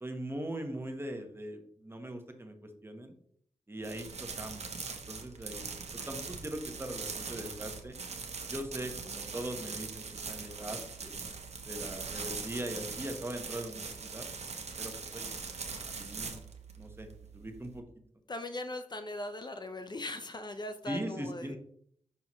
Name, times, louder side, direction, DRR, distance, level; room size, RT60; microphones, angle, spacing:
voice 1, 0.0-3.1 3.7-4.7 5.1-5.7 5.9-7.9 8.5-11.2 11.7-14.3 14.8-15.3 15.9-16.4 16.8-17.1 17.3-17.8 20.9-21.6, right 1 dB, 20° right, 5 dB, 1.2 m, -40 dB
sound 1, 3.8-17.8, right 5 dB, 65° right, 1.0 m, -41 dB
voice 2, 18.3-21.6, left 2 dB, 35° left, 8 dB, 0.6 m, -39 dB
6.0 x 5.6 x 3.1 m, 0.65 s
cardioid pair, 70°, 12 cm